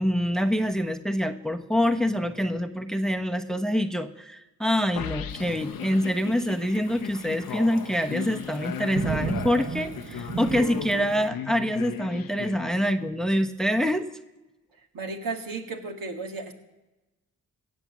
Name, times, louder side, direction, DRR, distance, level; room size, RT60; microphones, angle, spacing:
voice 1, 0.0-14.1, equal, ahead, 9 dB, 0.9 m, -26 dB
sound 1, 5.0-13.2, left 9 dB, 65° left, 0.8 m, -37 dB
Thunderstorm / Rain, 5.3-11.3, right 6 dB, 35° right, 0.6 m, -36 dB
voice 2, 14.9-16.5, right 3 dB, 65° right, 3 dB, 1.9 m, -34 dB
16.5 x 7.1 x 7.2 m, 1.1 s
supercardioid pair, 45°, 37 cm